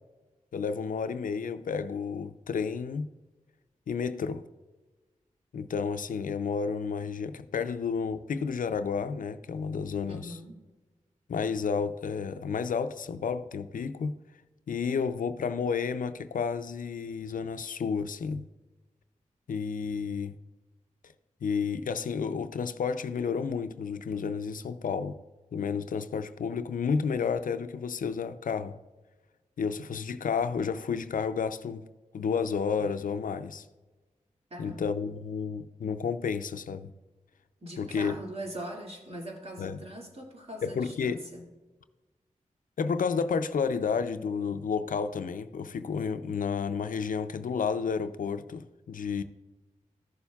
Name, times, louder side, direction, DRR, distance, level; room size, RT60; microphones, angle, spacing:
voice 1, 0.5-3.1 3.9-4.4 5.5-10.4 11.3-14.1 14.7-18.4 19.5-20.3 21.4-25.2 25.5-28.8 29.6-31.9 32.1-33.7 34.6-36.9 37.8-38.1 39.6-39.8 40.6-41.3 42.8-49.2, left 6 dB, 80° left, 0.5 m, -31 dB
voice 2, 10.1-10.6 34.5-34.9 37.6-41.4, right 1 dB, 45° right, 2.2 m, -41 dB
14.5 x 6.9 x 2.3 m
cardioid pair, 45°, 14 cm